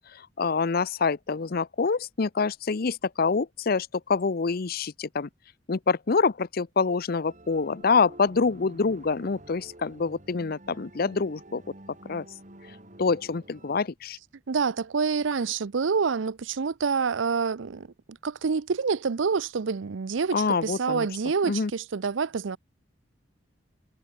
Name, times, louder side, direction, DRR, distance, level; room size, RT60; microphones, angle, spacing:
voice 1, 0.0-5.3 5.7-11.6 12.1-12.3 13.0-14.2 20.3-21.1 21.5-21.7, left 4 dB, 50° left, 0.6 m, -26 dB
sound 1, 7.2-13.8, right 1 dB, 40° right, 3.8 m, -49 dB
voice 2, 14.5-22.6, right 5 dB, 85° right, 0.6 m, -27 dB
head